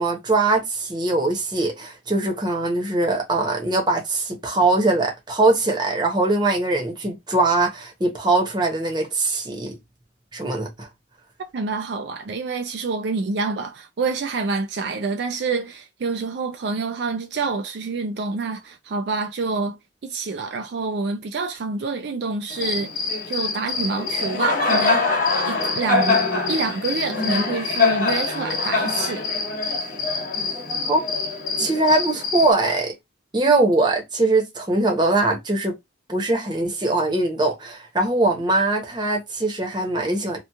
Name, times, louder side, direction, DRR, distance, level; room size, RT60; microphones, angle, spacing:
voice 1, 0.0-9.8 10.3-10.9 30.9-31.0 31.6-32.9 33.3-35.8 36.1-40.4, right 2 dB, 25° right, 0.9 m, -21 dB
voice 2, 11.5-25.1 25.4-26.2 26.5-29.3, right 4 dB, 65° right, 0.4 m, -27 dB
Cricket, 22.5-32.5, left 3 dB, 45° left, 0.9 m, -24 dB
2.8 x 2.4 x 3.5 m
head